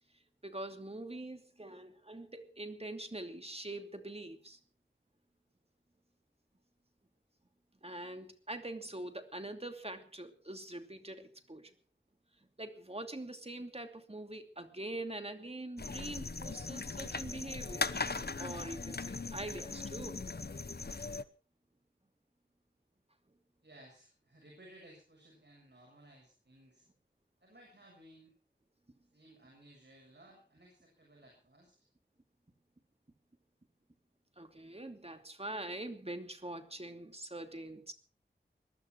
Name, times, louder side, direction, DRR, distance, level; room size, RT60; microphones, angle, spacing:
voice 1, 0.4-4.6 7.8-11.7 12.6-20.2 34.4-37.9, right 1 dB, 30° right, 6 dB, 2.7 m, -44 dB
sound 1, 15.8-21.2, left 4 dB, 55° left, 0.9 m, -39 dB
voice 2, 23.6-26.9 27.4-28.3 29.1-31.9, right 1 dB, 65° right, 0 dB, 7.2 m, -59 dB
21.5 x 13.0 x 4.7 m, 0.38 s
wide cardioid pair, 50°, 19 cm